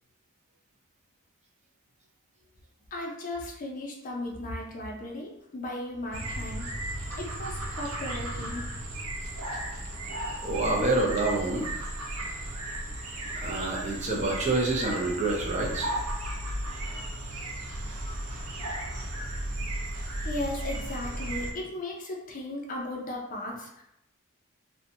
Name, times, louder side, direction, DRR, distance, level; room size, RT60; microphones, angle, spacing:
voice 1, 2.9-6.7 7.2-8.7 10.7-10.8 20.2-23.8, left 1 dB, 35° left, 0 dB, 0.4 m, -36 dB
sound 1, 6.1-21.5, right 1 dB, 85° right, 0.5 m, -35 dB
voice 2, 10.4-11.7 13.3-15.9, right 2 dB, 30° right, -1 dB, 0.4 m, -27 dB
2.6 x 2.1 x 2.6 m, 0.81 s
head